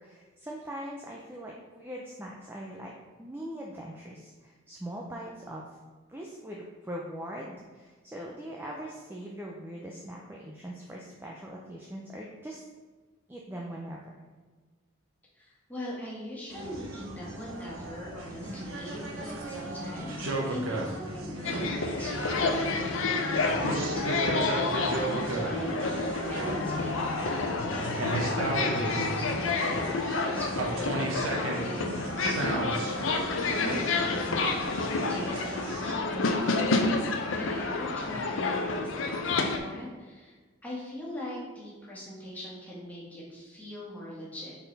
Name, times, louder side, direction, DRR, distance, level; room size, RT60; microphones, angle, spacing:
voice 1, 0.0-2.9 3.2-5.6 6.1-12.7 13.3-14.1, equal, 10° right, -2 dB, 0.5 m, -41 dB
voice 2, 15.3-29.8 30.2-37.0 37.3-40.4 40.6-44.6, equal, 10° left, -7 dB, 1.6 m, -41 dB
sound 1, 16.5-35.9, right 2 dB, 75° right, 1.0 m, -35 dB
sound 2, 19.4-29.4, left 3 dB, 30° right, 1.7 m, -46 dB
sound 3, 21.4-39.6, left 3 dB, 70° left, 0.6 m, -29 dB
5.7 x 4.2 x 4.0 m, 1.4 s
head